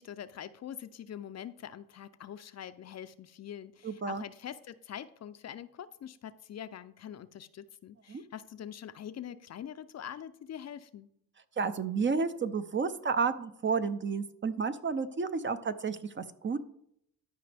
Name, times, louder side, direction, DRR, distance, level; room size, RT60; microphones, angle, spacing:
voice 1, 0.0-11.1, left 9 dB, 45° left, 12 dB, 0.5 m, -44 dB
voice 2, 3.8-4.2 8.1-8.2 11.6-16.6, right 5 dB, 30° right, 11 dB, 0.6 m, -31 dB
13.0 x 5.1 x 3.4 m, 0.73 s
supercardioid pair, 75°, 37 cm